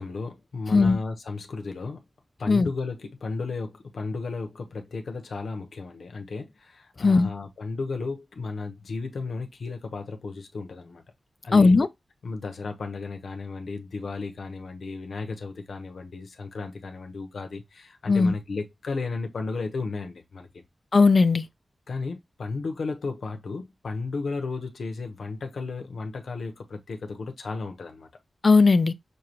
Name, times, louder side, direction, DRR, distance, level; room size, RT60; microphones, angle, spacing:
voice 1, 0.0-2.0 2.4-11.0 11.4-11.7 12.2-20.6 21.9-28.1, left 4 dB, 75° left, 0.9 m, -34 dB
voice 2, 7.0-7.3 11.5-11.9 18.1-18.3 20.9-21.5 28.4-28.9, left 4 dB, 40° left, 0.3 m, -18 dB
6.5 x 2.3 x 2.9 m
wide cardioid pair, 135°, 0 cm